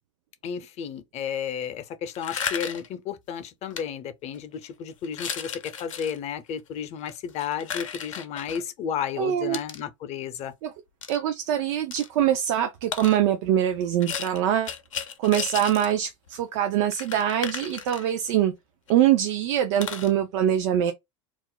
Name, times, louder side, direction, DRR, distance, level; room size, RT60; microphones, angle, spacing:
voice 1, 0.4-10.5, left 8 dB, 40° left, 0.6 m, -33 dB
sound 1, 2.1-2.9 3.7-3.8 4.3-4.6 5.0-6.2 7.0-8.6 9.5-9.8 11.0-11.2 11.9-12.1 12.9-13.2 14.0-15.9 16.3-16.4 16.6-16.7 16.9-18.3 18.9-19.0 19.2-19.3 19.8-20.1, left 7 dB, 85° left, 0.6 m, -34 dB
voice 2, 9.2-9.6 10.6-10.7 11.1-14.7 15.2-18.5 18.9-20.9, right 11 dB, 65° right, 0.5 m, -23 dB
2.4 x 2.1 x 3.8 m
hypercardioid pair, 85°, 16 cm